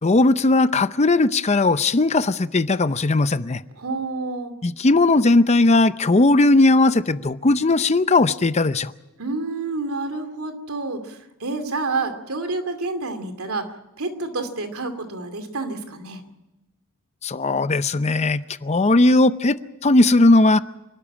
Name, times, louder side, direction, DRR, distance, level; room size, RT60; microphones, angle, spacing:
voice 1, 0.0-3.6 4.6-8.9 17.2-19.6 19.8-20.6, left 2 dB, 30° left, 13 dB, 0.6 m, -18 dB
voice 2, 3.8-4.5 9.2-13.7 14.0-16.2, right 3 dB, 85° right, 8 dB, 2.6 m, -28 dB
27.5 x 12.5 x 8.8 m, 1.0 s
head